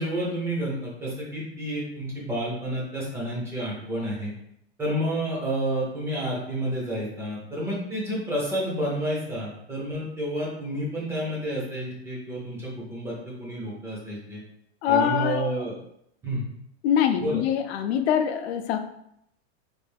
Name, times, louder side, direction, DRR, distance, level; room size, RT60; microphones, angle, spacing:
voice 1, 0.0-4.3 4.8-14.4 14.9-15.7 16.2-16.4 17.2-17.4, right 1 dB, 10° right, -4 dB, 0.4 m, -30 dB
voice 2, 14.8-15.6 16.8-18.8, left 8 dB, 70° left, 7 dB, 0.5 m, -24 dB
3.3 x 2.3 x 3.3 m, 0.74 s
supercardioid pair, 160°, 34 cm